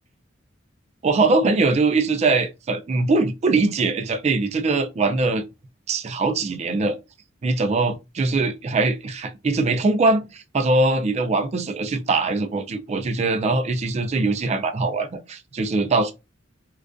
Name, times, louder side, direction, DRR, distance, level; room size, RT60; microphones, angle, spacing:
voice 1, 1.0-5.4 5.9-7.0 7.4-16.1, right 3 dB, 35° right, 0.3 m, -22 dB
2.4 x 2.3 x 2.3 m
head